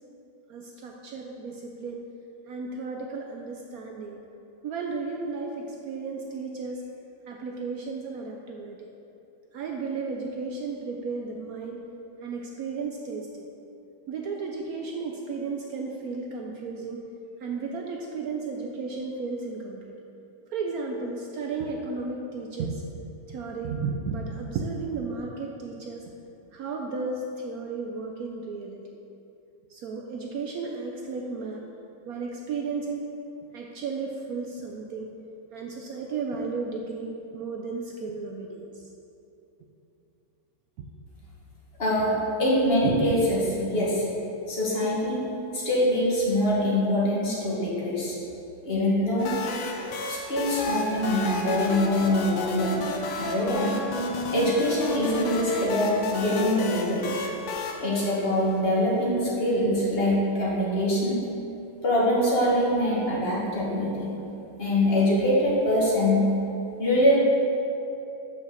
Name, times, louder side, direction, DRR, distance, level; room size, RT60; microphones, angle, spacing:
voice 1, 0.5-2.0 2.5-4.2 4.6-6.8 7.3-8.9 9.5-11.8 12.2-13.5 14.1-17.0 17.4-19.8 20.5-26.1 26.5-28.8 29.7-31.6 32.1-33.1 33.5-35.1 35.5-38.6 40.8-40.9 42.8-43.1, right 4 dB, 70° right, 1 dB, 0.9 m, -34 dB
voice 2, 41.8-44.0 44.5-45.2 45.5-48.1 48.6-49.3 50.1-52.8 53.2-53.7 54.3-57.1 57.8-61.2 61.8-64.1 64.6-66.2 66.8-67.2, left 1 dB, 35° left, -5 dB, 1.7 m, -24 dB
sound 1, 49.2-58.8, left 3 dB, 90° left, 1.5 m, -32 dB
6.1 x 5.6 x 6.5 m, 2.8 s
omnidirectional pair, 2.0 m